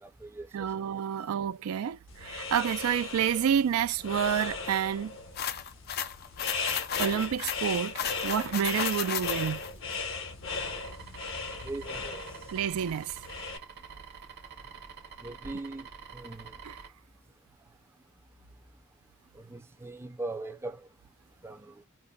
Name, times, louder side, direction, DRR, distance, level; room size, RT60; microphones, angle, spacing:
voice 1, 0.0-0.5 11.6-12.2 15.2-15.9 16.1-16.5 19.3-20.8 21.4-21.7, right 2 dB, 10° right, 0.5 m, -40 dB
voice 2, 0.5-5.1 7.0-9.6 12.5-13.2 16.6-16.7, right 8 dB, 80° right, 0.3 m, -29 dB
sound 1, 2.1-13.6, left 4 dB, 65° left, 1.0 m, -37 dB
sound 2, 5.4-9.7, left 8 dB, 45° left, 0.4 m, -34 dB
sound 3, 10.5-16.9, right 6 dB, 50° right, 0.8 m, -47 dB
5.2 x 2.1 x 2.3 m
head